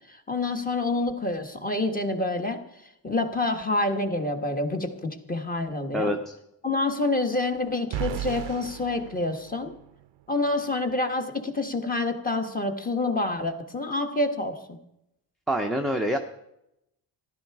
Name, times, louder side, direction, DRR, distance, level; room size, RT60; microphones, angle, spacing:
voice 1, 0.3-2.6 3.0-6.1 6.6-9.7 10.3-14.6, left 2 dB, 20° left, 5 dB, 1.5 m, -27 dB
voice 2, 5.9-6.3 15.5-16.2, equal, ahead, 2 dB, 0.7 m, -26 dB
sound 1, 7.9-10.1, right 10 dB, 75° right, 0.7 m, -35 dB
14.5 x 12.0 x 4.7 m, 0.82 s
cardioid pair, 135°, 45 cm